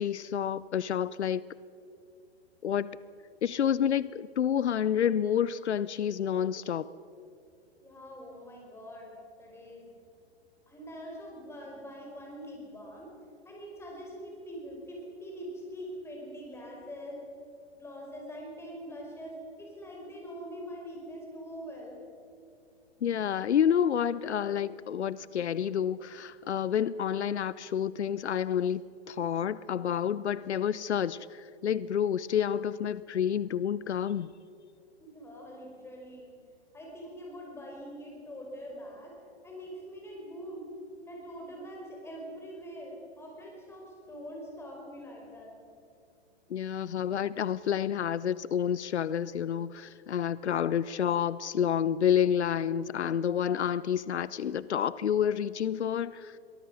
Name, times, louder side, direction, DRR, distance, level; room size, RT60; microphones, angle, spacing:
voice 1, 0.0-1.4 2.6-2.9 3.4-6.9 23.0-28.8 29.1-34.3 46.5-56.4, left 9 dB, 85° left, 19 dB, 0.7 m, -29 dB
voice 2, 7.8-9.1 9.4-9.9 10.7-13.1 13.5-17.2 17.8-22.0 35.0-36.3 36.7-39.2 39.4-40.7 41.1-45.5, equal, 10° left, -1 dB, 5.3 m, -43 dB
23.5 x 18.5 x 6.3 m, 2.5 s
hypercardioid pair, 135°, 33 cm